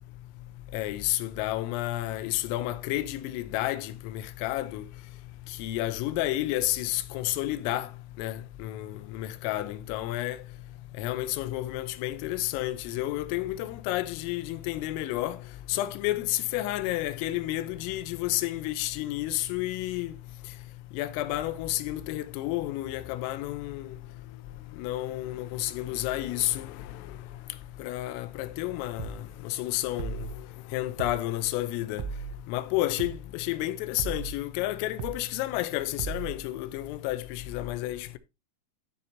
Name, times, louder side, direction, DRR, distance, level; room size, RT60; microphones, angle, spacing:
voice 1, 0.7-4.8 5.6-7.9 8.2-10.4 11.0-15.4 15.7-20.2 20.9-24.0 24.8-26.8 27.8-30.3 30.7-32.0 32.5-38.2, left 15 dB, 85° left, 3.4 m, -31 dB
sound 1, 29.0-29.2 30.0-30.4 31.0-31.2 32.0-32.4 33.0-33.2 34.0-34.4 35.0-35.2 36.0-36.4, right 5 dB, 85° right, 3.3 m, -36 dB
13.0 x 7.1 x 2.7 m
omnidirectional pair, 5.8 m